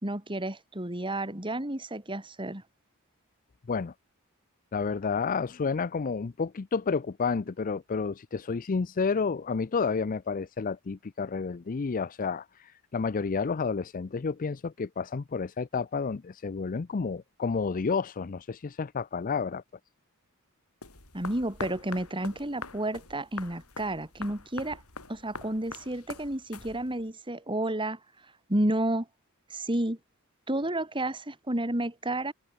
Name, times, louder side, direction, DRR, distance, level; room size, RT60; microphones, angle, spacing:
voice 1, 0.0-2.6 21.1-24.8 25.1-28.0 28.5-29.1 29.5-30.0 30.5-32.3, right 1 dB, 20° right, 3.2 m, -31 dB
voice 2, 4.7-19.6, left 5 dB, 40° left, 0.5 m, -30 dB
sound 1, 20.8-27.1, left 4 dB, 80° left, 7.6 m, -44 dB
head